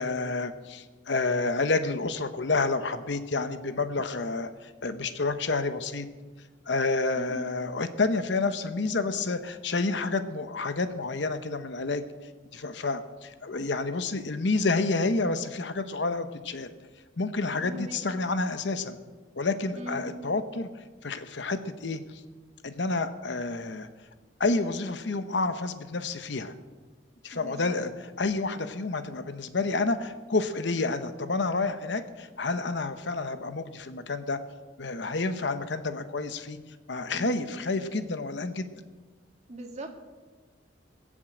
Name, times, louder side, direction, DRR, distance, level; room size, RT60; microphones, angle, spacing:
voice 1, 0.0-6.1 6.7-12.1 12.5-16.7 17.2-19.0 19.4-20.7 21.0-22.2 22.6-23.9 24.4-26.5 27.2-27.9 28.2-34.4 34.8-36.6 36.9-38.7, left 3 dB, 70° left, 10 dB, 0.9 m, -29 dB
voice 2, 7.1-7.5 17.6-18.1 19.7-20.1 27.3-27.8 37.1-37.5 39.5-39.9, right 1 dB, 40° right, 2 dB, 1.9 m, -40 dB
20.0 x 7.4 x 7.9 m, 1.3 s
head